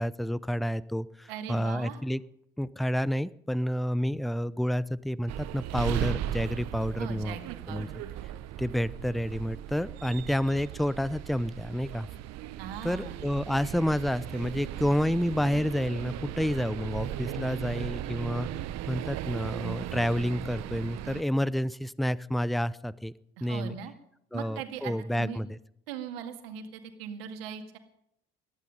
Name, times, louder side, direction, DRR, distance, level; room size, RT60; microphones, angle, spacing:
voice 1, 0.0-2.2 2.6-7.4 7.7-7.9 8.6-12.1 12.8-18.5 18.9-23.1 23.4-23.7 24.3-25.6, equal, ahead, 19 dB, 0.7 m, -29 dB
voice 2, 1.3-2.0 6.9-8.0 12.6-13.3 23.4-23.9 24.3-25.4 25.9-27.8, right 8 dB, 80° right, 6 dB, 2.0 m, -40 dB
sound 1, 5.3-21.2, right 12 dB, 60° right, 1.0 m, -37 dB
19.0 x 13.5 x 5.5 m, 0.73 s
hypercardioid pair, 55°, 29 cm